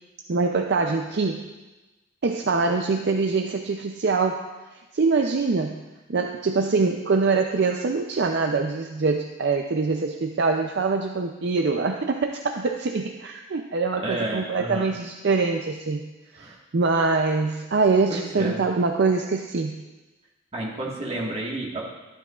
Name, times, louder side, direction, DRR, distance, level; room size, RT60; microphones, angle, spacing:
voice 1, 0.3-1.5 2.2-4.4 4.9-5.8 6.1-16.1 16.3-19.8, right 4 dB, 55° right, 4 dB, 0.5 m, -24 dB
voice 2, 13.9-14.9 16.4-16.6 18.1-18.6 20.5-21.8, right 2 dB, 30° right, -3 dB, 1.6 m, -31 dB
12.5 x 11.0 x 2.4 m, 1.1 s
head